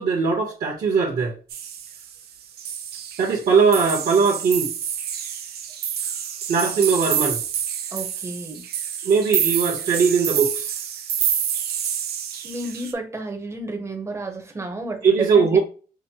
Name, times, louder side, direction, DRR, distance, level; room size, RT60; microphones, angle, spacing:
voice 1, 0.0-1.4 3.2-4.7 6.5-7.4 9.0-10.8 15.0-15.6, right 5 dB, 55° right, 0.9 m, -20 dB
sound 1, 1.5-2.2 2.6-3.4 3.7-12.9, right 9 dB, 80° right, 0.6 m, -28 dB
voice 2, 7.9-8.6 12.4-15.6, right 2 dB, 15° right, 0.7 m, -32 dB
5.8 x 2.0 x 2.8 m
wide cardioid pair, 160°, 16 cm